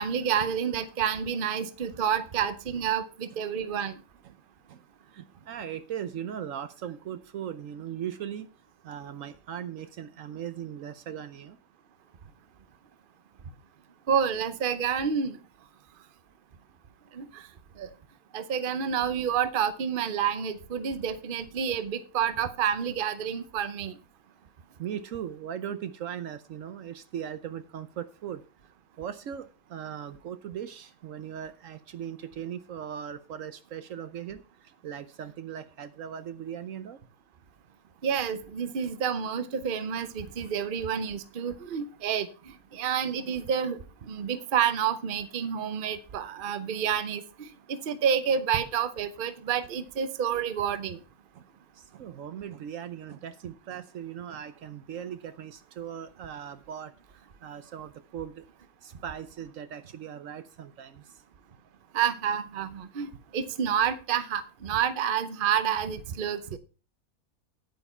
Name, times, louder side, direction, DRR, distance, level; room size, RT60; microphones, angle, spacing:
voice 1, 0.0-3.9 14.1-15.4 17.1-17.4 17.8-17.9 18.3-23.9 38.0-42.3 42.7-43.8 44.1-47.2 47.7-51.0 61.9-66.6, right 8 dB, 45° right, 0.8 m, -29 dB
voice 2, 5.1-8.5 8.8-11.6 24.8-28.4 29.0-34.4 34.8-37.0 51.3-51.4 51.8-58.4 58.8-61.0, right 9 dB, 70° right, 1.0 m, -39 dB
9.4 x 9.1 x 4.3 m
omnidirectional pair, 1.5 m